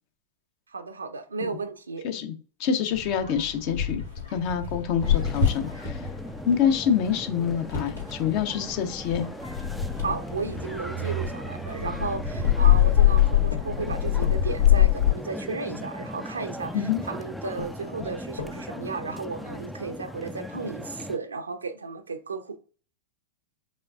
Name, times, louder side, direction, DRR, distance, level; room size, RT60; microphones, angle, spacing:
voice 1, 0.7-2.0 10.0-22.6, right 4 dB, 75° right, 0.6 m, -34 dB
voice 2, 2.6-4.0 4.3-6.1 6.5-9.3 16.7-17.0, left 8 dB, 45° left, 0.8 m, -26 dB
sound 1, 2.9-15.1, left 10 dB, 90° left, 2.5 m, -25 dB
sound 2, 5.0-21.2, equal, ahead, 0.4 m, -38 dB
sound 3, 11.9-12.7 13.5-15.5 16.4-16.5 17.1-17.2 17.6-18.9 19.4-19.5 19.8-19.9, left 5 dB, 75° left, 0.7 m, -41 dB
5.4 x 3.9 x 2.4 m
figure-of-eight pair, 90°, 0 cm